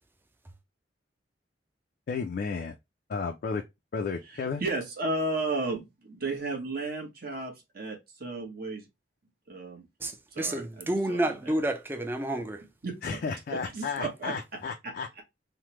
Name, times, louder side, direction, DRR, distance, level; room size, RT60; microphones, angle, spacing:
voice 1, 2.1-2.8 3.1-3.6 3.9-4.6 13.0-15.1, left 5 dB, 55° left, 0.4 m, -33 dB
voice 2, 4.2-8.9 9.5-9.9 10.3-11.6 12.8-13.2 13.5-15.2, right 2 dB, 55° right, 1.0 m, -34 dB
voice 3, 10.0-12.6, right 1 dB, 10° right, 0.4 m, -30 dB
3.2 x 2.1 x 2.9 m
head